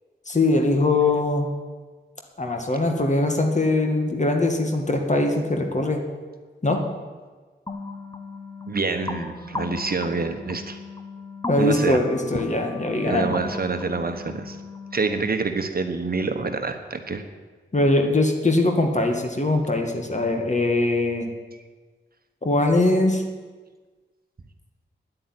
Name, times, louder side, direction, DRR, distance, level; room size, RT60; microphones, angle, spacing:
voice 1, 0.3-1.5 2.4-6.0 6.6-6.8 11.5-13.4 17.7-21.3 22.4-23.2, left 2 dB, 40° left, 3 dB, 2.1 m, -21 dB
sound 1, 7.7-15.2, left 3 dB, 15° left, 1.0 m, -36 dB
voice 2, 8.7-10.8 11.6-12.0 13.0-14.6 14.9-17.2, right 4 dB, 50° right, 7 dB, 1.1 m, -27 dB
10.0 x 8.9 x 9.8 m, 1.4 s
wide cardioid pair, 75°, 19 cm